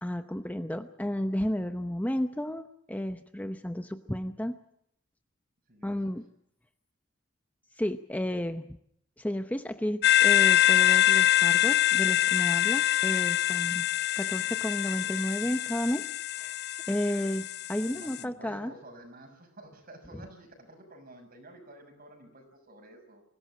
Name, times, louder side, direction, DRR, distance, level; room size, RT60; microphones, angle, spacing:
voice 1, 0.0-4.6 5.8-6.2 7.8-8.8 9.2-13.8 14.2-16.5 16.9-18.7, equal, 10° left, 8 dB, 0.8 m, -32 dB
sound 1, 10.0-18.2, left 14 dB, 55° left, 0.9 m, -25 dB
voice 2, 17.9-23.2, right 1 dB, 50° right, 5 dB, 6.3 m, -50 dB
25.0 x 16.5 x 7.6 m, 0.73 s
head